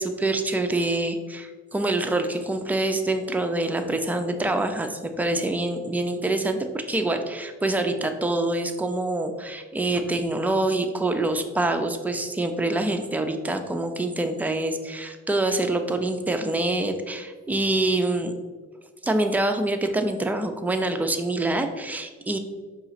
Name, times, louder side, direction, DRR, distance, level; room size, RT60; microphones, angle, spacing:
voice 1, 0.0-18.3 19.0-22.4, right 2 dB, 5° right, 6 dB, 0.3 m, -25 dB
4.7 x 2.5 x 3.9 m, 1.4 s
cardioid pair, 90°, 30 cm